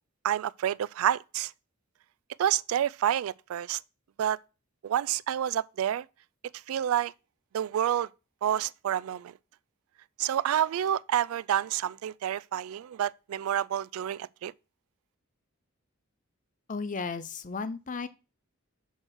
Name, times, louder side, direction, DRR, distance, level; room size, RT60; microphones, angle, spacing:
voice 1, 0.2-1.5 2.4-3.8 4.2-4.4 4.8-6.1 6.7-7.1 7.5-8.1 8.4-9.3 10.2-14.5, right 10 dB, 70° right, 0.3 m, -28 dB
voice 2, 16.7-18.1, left 4 dB, 35° left, 0.6 m, -34 dB
6.4 x 4.6 x 6.3 m
head